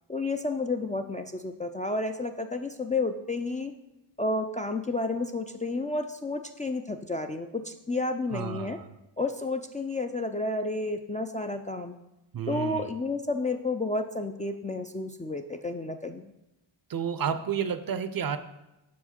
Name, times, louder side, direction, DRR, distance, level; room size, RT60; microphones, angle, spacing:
voice 1, 0.1-3.7 4.2-8.8 9.2-12.0 12.5-16.2, left 2 dB, 20° left, 4 dB, 0.3 m, -31 dB
voice 2, 8.3-9.0 12.3-12.9 16.9-18.4, right 7 dB, 50° right, 11 dB, 0.5 m, -31 dB
6.2 x 4.7 x 4.2 m, 0.94 s
cardioid pair, 55°, 45 cm